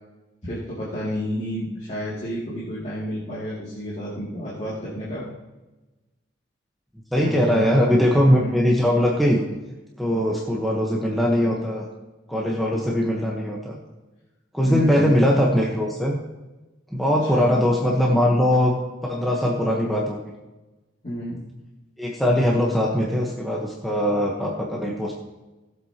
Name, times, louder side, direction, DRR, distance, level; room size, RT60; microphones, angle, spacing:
voice 1, 0.4-5.2 7.1-7.7 8.2-8.6 14.6-15.2 17.3-17.5 21.0-21.4, equal, 35° left, -8 dB, 2.6 m, -31 dB
voice 2, 7.1-9.4 10.0-11.9 12.3-13.8 14.5-16.2 16.9-18.8 19.1-20.2 22.0-25.1, equal, ahead, -3 dB, 1.2 m, -21 dB
18.0 x 7.9 x 3.0 m, 1.1 s
head